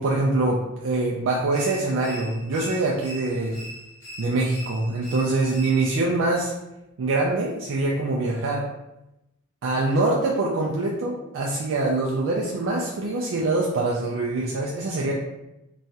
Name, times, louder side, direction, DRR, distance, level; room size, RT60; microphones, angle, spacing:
voice 1, 0.0-3.6 4.2-6.5 7.0-8.7 9.6-15.1, right 2 dB, 60° right, -3 dB, 0.4 m, -24 dB
sound 1, 1.5-6.1, right 1 dB, 40° left, 1.0 m, -42 dB
3.0 x 2.3 x 2.7 m, 0.91 s
head